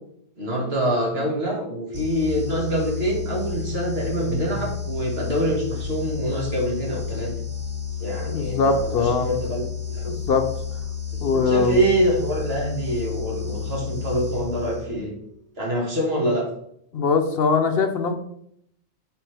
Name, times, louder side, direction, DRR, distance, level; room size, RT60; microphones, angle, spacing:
voice 1, 0.4-7.3 8.0-10.1 11.1-15.1 15.6-16.5, right 1 dB, 65° right, -2 dB, 2.2 m, -25 dB
sound 1, 1.9-15.1, left 7 dB, 25° right, 1.2 m, -31 dB
voice 2, 8.3-9.3 10.1-10.5 11.2-11.8 16.9-18.1, left 4 dB, 65° left, 6 dB, 0.9 m, -21 dB
7.9 x 4.2 x 3.4 m, 0.71 s
omnidirectional pair, 1.1 m